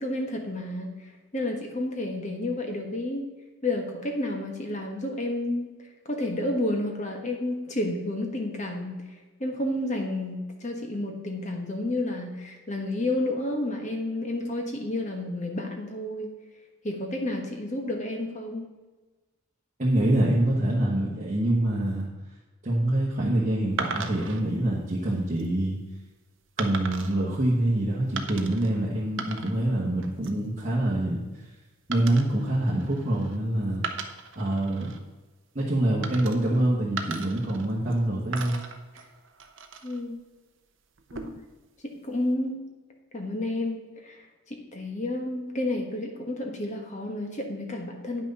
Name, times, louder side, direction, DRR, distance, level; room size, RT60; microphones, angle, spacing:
voice 1, 0.0-3.3 3.6-5.7 6.0-9.0 9.4-16.3 16.8-18.7 39.8-40.2 41.1-41.4 41.8-42.6 43.1-48.3, left 1 dB, 30° left, 2 dB, 1.3 m, -31 dB
voice 2, 19.8-22.1 22.6-25.8 26.6-31.5 31.9-33.8 34.3-34.9 35.5-38.6, right 1 dB, 35° right, -6 dB, 1.3 m, -25 dB
sound 1, 23.8-24.4 25.1-25.5 26.6-27.2 28.2-28.7 29.0-29.7 30.0-30.5 31.9-33.4 33.7-35.0 36.0-36.6 37.0-38.0 38.3-40.0 41.0-41.6, right 5 dB, 55° right, 0.7 m, -37 dB
9.4 x 6.1 x 5.5 m, 1.2 s
head